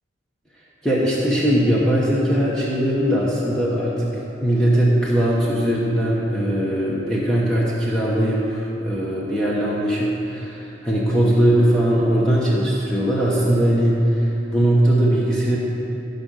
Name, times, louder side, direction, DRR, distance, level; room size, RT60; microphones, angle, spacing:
voice 1, 0.8-15.6, right 1 dB, 5° left, -7 dB, 1.1 m, -20 dB
14.0 x 5.4 x 6.3 m, 3.0 s
head